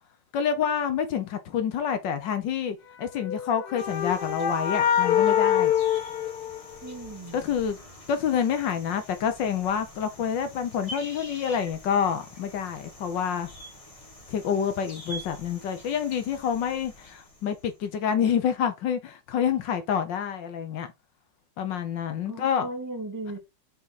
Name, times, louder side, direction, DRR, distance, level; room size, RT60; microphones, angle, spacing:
voice 1, 0.3-5.7 7.3-7.8 8.1-13.5 14.3-20.9 21.6-22.7, left 8 dB, 80° left, 1.7 m, -28 dB
sound 1, 3.2-7.1, left 9 dB, 65° left, 1.4 m, -25 dB
sound 2, 3.8-18.0, left 1 dB, 20° left, 1.7 m, -46 dB
voice 2, 6.8-7.5 22.2-23.4, right 2 dB, 10° right, 2.4 m, -37 dB
6.2 x 4.4 x 4.2 m
omnidirectional pair, 1.9 m